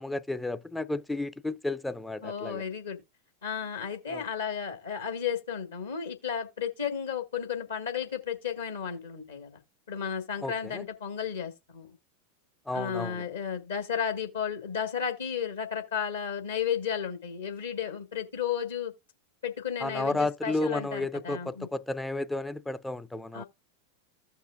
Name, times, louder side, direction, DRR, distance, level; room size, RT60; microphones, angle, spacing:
voice 1, 0.0-2.6 4.1-4.2 10.4-10.8 12.7-13.2 19.8-23.4, left 2 dB, 5° left, 0.4 m, -32 dB
voice 2, 2.2-3.0 3.4-9.6 9.9-11.9 12.7-18.9 19.4-21.7 23.3-23.4, left 8 dB, 65° left, 1.7 m, -33 dB
15.5 x 5.5 x 2.3 m
figure-of-eight pair, 90°, 0 cm